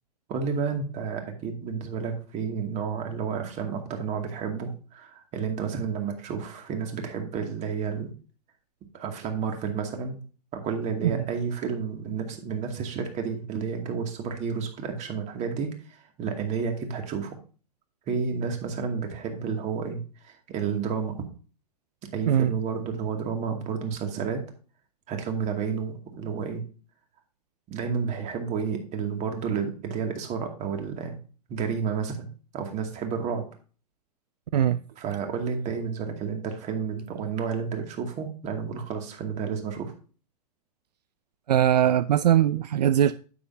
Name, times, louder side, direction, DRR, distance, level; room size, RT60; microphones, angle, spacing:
voice 1, 0.3-8.1 8.9-10.2 10.5-17.3 18.1-21.1 22.1-24.4 25.1-26.6 27.7-31.2 31.5-32.3 32.5-33.4 35.0-39.9, right 6 dB, 35° right, 2.3 m, -31 dB
voice 2, 41.5-43.1, right 10 dB, 75° right, 0.5 m, -21 dB
9.4 x 8.5 x 2.8 m
hypercardioid pair, 110°, 21 cm